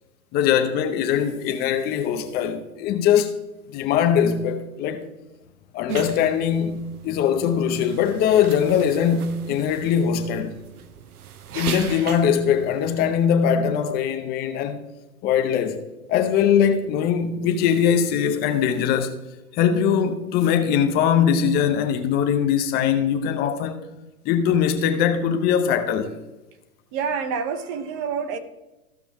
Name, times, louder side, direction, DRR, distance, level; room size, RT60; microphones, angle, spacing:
voice 1, 0.3-3.4 3.7-5.0 5.7-10.5 11.5-14.8 15.2-15.8 16.1-19.1 19.5-23.8 24.2-26.1, left 8 dB, 20° left, 0.7 m, -21 dB
sound 1, 5.9-13.3, right 8 dB, 85° right, 0.9 m, -37 dB
voice 2, 26.9-28.4, right 6 dB, 30° right, 0.8 m, -27 dB
15.0 x 5.9 x 3.5 m
hypercardioid pair, 140°, 43 cm